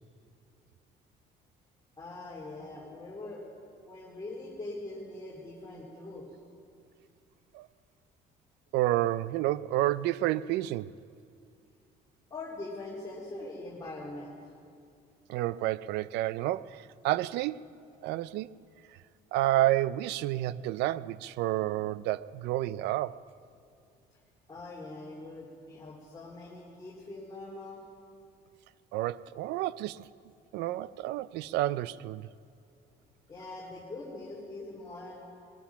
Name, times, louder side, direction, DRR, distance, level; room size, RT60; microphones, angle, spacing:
voice 1, 2.0-3.4 3.8-6.3 12.3-14.4 24.5-27.8 33.3-35.2, left 2 dB, 20° left, 2.6 m, -42 dB
voice 2, 8.7-10.9 15.3-17.7 18.0-18.5 19.3-23.2 28.9-30.1 30.5-32.3, right 15 dB, 85° right, 0.4 m, -30 dB
20.5 x 11.5 x 5.6 m
cardioid pair, 110°, 17 cm